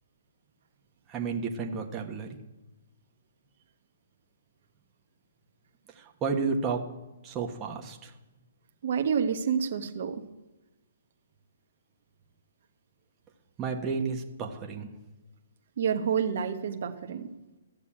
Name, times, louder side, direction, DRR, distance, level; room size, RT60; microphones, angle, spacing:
voice 1, 1.1-2.4 5.9-6.8 7.2-8.1 13.6-14.9, right 5 dB, 20° right, 1 dB, 1.4 m, -32 dB
voice 2, 8.8-10.2 15.8-17.3, right 7 dB, 60° right, 5 dB, 1.2 m, -28 dB
14.0 x 6.8 x 8.7 m, 1.1 s
hypercardioid pair, 150°, 0 cm